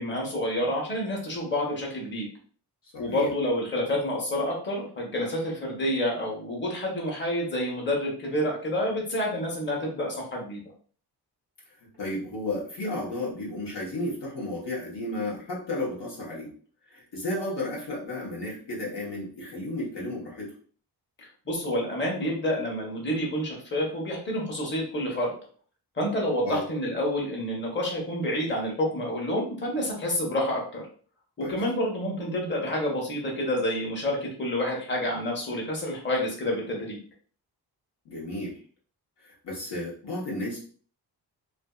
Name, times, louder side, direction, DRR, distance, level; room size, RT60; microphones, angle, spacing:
voice 1, 0.0-2.3 3.0-10.6 21.2-25.3 26.0-30.8 31.4-37.0, left 1 dB, 25° left, -2 dB, 0.9 m, -28 dB
voice 2, 2.9-3.3 12.0-16.5 16.9-20.5 26.4-26.6 31.4-31.6 38.0-38.6 39.2-40.6, left 1 dB, 90° left, -4 dB, 1.1 m, -33 dB
2.5 x 2.4 x 2.3 m, 0.43 s
cardioid pair, 80°, 41 cm